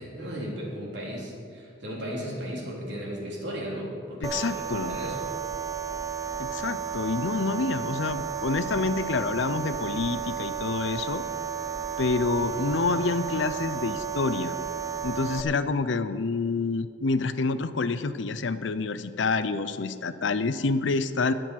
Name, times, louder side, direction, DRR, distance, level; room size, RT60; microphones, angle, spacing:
voice 1, 0.0-5.3 12.4-12.6, equal, 65° right, -3 dB, 3.2 m, -36 dB
voice 2, 4.2-5.0 6.4-11.2 12.0-14.5 15.0-21.3, left 3 dB, 75° left, 13 dB, 0.6 m, -27 dB
sound 1, 4.2-15.4, right 7 dB, 20° right, 0.5 m, -33 dB
21.0 x 7.8 x 4.6 m, 2.3 s
head